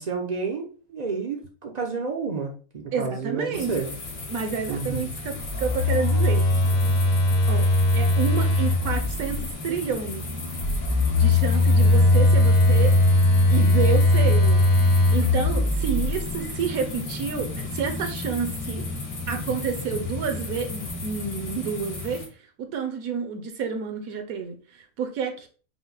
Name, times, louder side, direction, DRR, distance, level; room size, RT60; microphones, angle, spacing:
voice 1, 0.0-3.9 4.7-5.1, right 4 dB, 55° right, 2 dB, 0.4 m, -30 dB
voice 2, 2.9-3.8 4.3-6.5 7.5-10.3 11.2-13.0 13.5-18.9 19.3-22.2 22.6-25.5, right 6 dB, 75° right, 5 dB, 1.1 m, -29 dB
sound 1, 3.5-22.3, left 3 dB, 85° left, 2.0 m, -34 dB
Telephone, 5.4-9.4 10.6-16.3, left 2 dB, 70° left, 1.4 m, -19 dB
4.8 x 2.1 x 3.9 m, 0.39 s
omnidirectional pair, 1.5 m